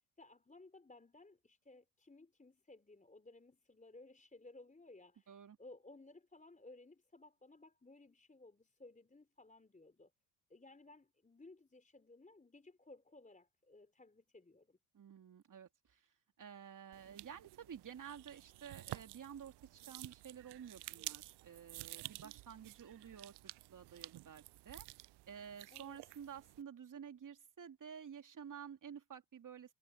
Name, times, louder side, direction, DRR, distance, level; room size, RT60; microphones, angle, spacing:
voice 1, 0.2-10.1 10.5-14.8 25.7-26.0, left 2 dB, 15° left, 4.2 m, -59 dB
voice 2, 5.3-5.6 14.9-24.9 25.3-29.7, right 8 dB, 40° right, 2.8 m, -52 dB
sound 1, 16.9-26.6, right 19 dB, 55° right, 0.7 m, -51 dB
hypercardioid pair, 55°, 48 cm